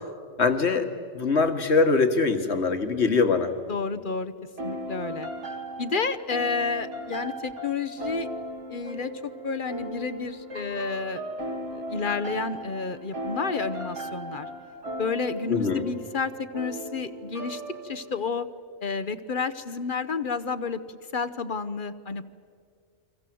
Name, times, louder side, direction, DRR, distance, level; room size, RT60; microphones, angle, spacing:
voice 1, 0.4-0.9 1.1-3.5 15.5-15.8, left 4 dB, 65° left, 7 dB, 1.9 m, -22 dB
voice 2, 3.7-4.3 4.6-5.3 5.8-8.3 8.7-11.2 11.7-14.5 15.0-18.5 18.8-20.8 21.1-22.2, left 5 dB, 50° left, 11 dB, 0.9 m, -30 dB
sound 1, 4.6-18.3, right 1 dB, 75° right, 3.2 m, -37 dB
29.5 x 24.0 x 7.7 m, 2.2 s
omnidirectional pair, 1.2 m